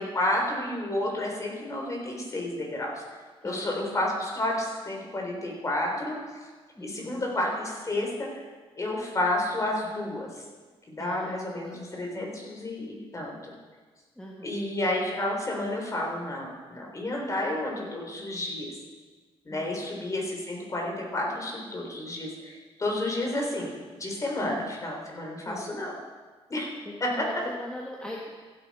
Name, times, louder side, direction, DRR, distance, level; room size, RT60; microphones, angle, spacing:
voice 1, 0.0-3.0 3.4-6.2 6.8-8.3 8.8-10.4 10.9-13.3 14.4-18.7 19.4-23.7 24.0-25.9 26.5-26.7 27.0-27.1, left 1 dB, 30° left, -1 dB, 3.7 m, -31 dB
voice 2, 3.4-3.9 6.7-7.3 11.0-11.9 14.1-14.6 19.5-20.0 24.4-24.7 25.4-25.7 26.8-28.3, left 1 dB, 10° left, -2 dB, 1.5 m, -41 dB
15.5 x 8.5 x 4.8 m, 1.4 s
cardioid pair, 95°, 11 cm